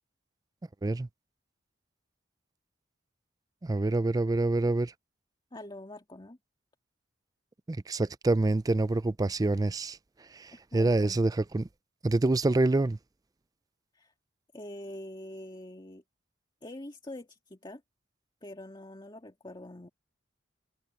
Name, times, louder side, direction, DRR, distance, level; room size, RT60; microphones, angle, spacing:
voice 1, 3.6-4.9 7.7-10.0 10.3-11.7 12.0-13.0, right 2 dB, 20° right, 0.4 m, -26 dB
voice 2, 5.5-6.4 10.5-11.2 13.9-14.1 14.5-16.0 16.6-17.8 18.4-19.9, left 1 dB, 25° left, 2.0 m, -44 dB
head